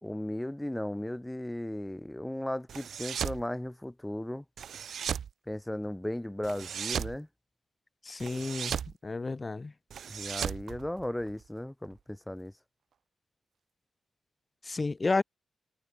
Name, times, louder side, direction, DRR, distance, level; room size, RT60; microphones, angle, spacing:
voice 1, 0.0-4.4 5.5-7.3 10.1-12.5, left 1 dB, 5° left, 2.2 m, -36 dB
sound 1, 2.7-3.4 4.6-5.3 6.4-7.2 8.2-8.9 9.9-11.4, right 8 dB, 75° right, 3.9 m, -36 dB
voice 2, 8.0-8.8 9.0-9.7 14.6-15.2, left 3 dB, 30° left, 1.5 m, -31 dB
cardioid pair, 100°, 0 cm